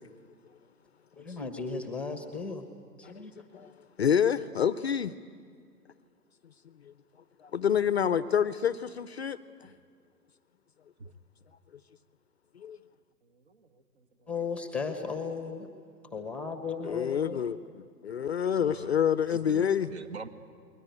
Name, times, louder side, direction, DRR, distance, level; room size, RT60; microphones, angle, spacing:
voice 1, 1.2-2.6 3.0-3.3 14.3-15.7 16.1-17.4, left 5 dB, ahead, 1.1 m, -35 dB
voice 2, 3.0-5.1 6.8-6.9 7.4-9.7 12.5-12.8 16.8-19.9, left 8 dB, 40° left, 0.6 m, -28 dB
voice 3, 13.2-14.3 16.2-16.3 18.6-18.9 19.3-20.3, right 3 dB, 40° right, 1.8 m, -45 dB
28.5 x 21.5 x 9.4 m
figure-of-eight pair, 130°, 50 cm